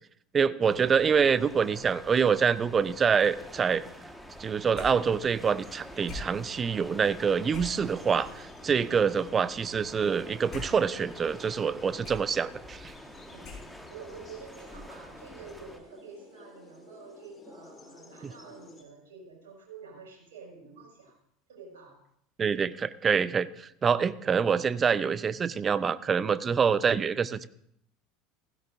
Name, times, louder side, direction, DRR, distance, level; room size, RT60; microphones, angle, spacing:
voice 1, 0.3-3.9 4.4-12.9 18.2-18.3 22.4-27.5, right 6 dB, 25° right, 17 dB, 0.6 m, -26 dB
sound 1, 0.6-15.8, equal, ahead, 1.6 m, -48 dB
sound 2, 4.7-14.1, left 3 dB, 40° left, 5.7 m, -47 dB
sound 3, 7.5-18.8, left 2 dB, 20° left, 3.1 m, -55 dB
voice 2, 8.6-9.0 13.3-13.6 13.9-21.1 21.5-22.0, right 4 dB, 70° right, -2 dB, 6.1 m, -48 dB
16.0 x 15.5 x 2.7 m, 0.72 s
figure-of-eight pair, 75°, 0 cm